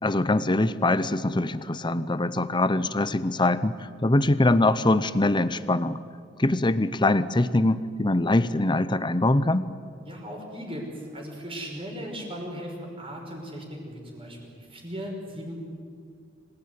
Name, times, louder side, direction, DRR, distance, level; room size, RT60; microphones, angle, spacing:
voice 1, 0.0-6.0 6.4-9.7, left 2 dB, 25° left, 14 dB, 0.8 m, -23 dB
voice 2, 10.0-15.5, equal, 30° right, 0 dB, 6.0 m, -37 dB
26.5 x 18.0 x 9.7 m, 2.3 s
head